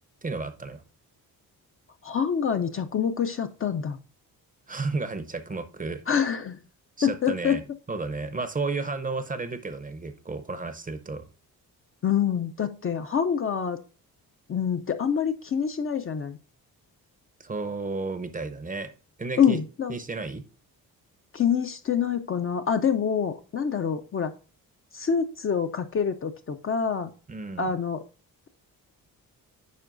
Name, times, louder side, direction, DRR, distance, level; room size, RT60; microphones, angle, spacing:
voice 1, 0.2-0.8 4.7-6.0 7.0-7.6 7.9-11.3 17.4-18.9 19.2-19.6 19.9-20.4 27.3-27.7, right 3 dB, 20° right, 11 dB, 0.6 m, -32 dB
voice 2, 2.0-4.0 6.1-6.6 7.0-7.6 12.0-13.8 14.5-16.4 19.4-19.9 21.3-24.3 24.9-27.1 27.6-28.0, left 7 dB, 35° left, 7 dB, 0.4 m, -26 dB
9.3 x 5.2 x 2.5 m, 0.36 s
cardioid pair, 100°, 37 cm